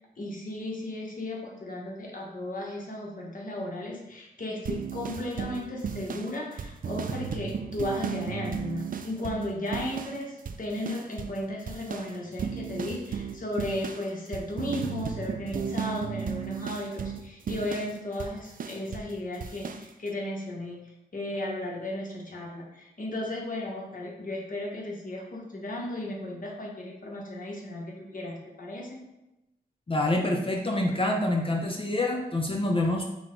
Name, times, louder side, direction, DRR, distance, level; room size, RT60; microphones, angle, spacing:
voice 1, 0.0-29.0, left 1 dB, 50° left, -2 dB, 1.2 m, -35 dB
sound 1, 4.7-10.2 10.5-11.4 11.7-19.1 19.4-19.9, right 6 dB, 55° right, 0.4 m, -35 dB
voice 2, 29.9-33.0, left 1 dB, 30° left, 1 dB, 0.6 m, -26 dB
5.9 x 2.2 x 3.7 m, 0.93 s
cardioid pair, 60°, 17 cm